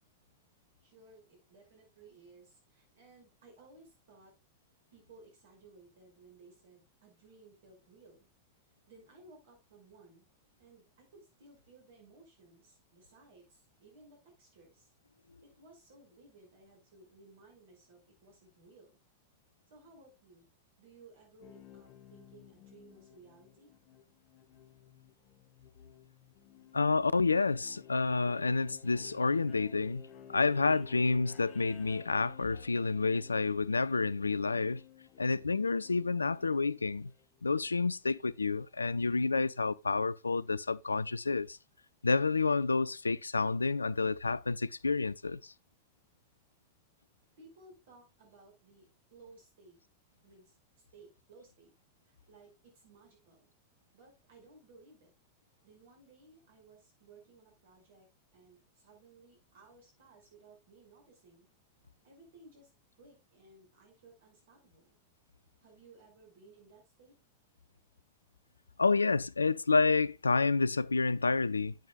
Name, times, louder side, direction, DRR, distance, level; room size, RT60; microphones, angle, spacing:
voice 1, 0.8-4.3 4.9-8.3 8.9-10.2 10.6-14.9 15.4-19.0 19.7-20.5 20.8-23.7 47.4-49.8 50.2-51.7 52.1-53.5 53.9-55.1 55.6-58.1 58.3-61.5 62.0-62.7 63.0-65.0 65.6-67.2, right 3 dB, 60° right, 5.5 m, -59 dB
sound 1, 21.4-37.7 39.2-39.3, left 9 dB, 40° left, 1.1 m, -55 dB
voice 2, 26.7-30.0 30.3-34.8 35.2-37.1 37.4-41.6 42.0-45.5 68.8-71.7, left 4 dB, 80° left, 0.4 m, -29 dB
10.5 x 8.8 x 2.3 m
figure-of-eight pair, 90°, 0 cm